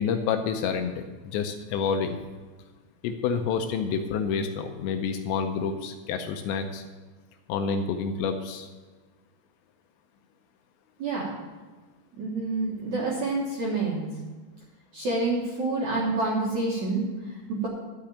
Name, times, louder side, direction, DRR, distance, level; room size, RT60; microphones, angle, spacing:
voice 1, 0.0-2.2 3.0-6.8 7.5-8.7, left 6 dB, 85° left, 6 dB, 2.7 m, -28 dB
voice 2, 12.2-14.1 14.9-17.7, right 3 dB, 65° right, -5 dB, 1.9 m, -28 dB
12.0 x 5.8 x 8.5 m, 1.3 s
omnidirectional pair, 5.5 m